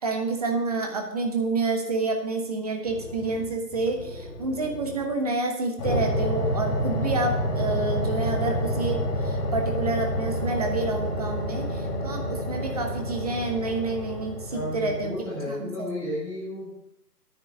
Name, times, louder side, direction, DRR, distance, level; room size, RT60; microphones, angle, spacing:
voice 1, 0.0-15.2 15.5-15.9, right 3 dB, 25° right, 3 dB, 1.0 m, -28 dB
sound 1, 2.8-5.1 5.8-15.1, equal, 20° left, 2.2 m, -29 dB
voice 2, 14.5-16.7, left 1 dB, 5° left, -10 dB, 0.9 m, -33 dB
9.8 x 6.0 x 8.1 m, 0.79 s
figure-of-eight pair, 145°, 49 cm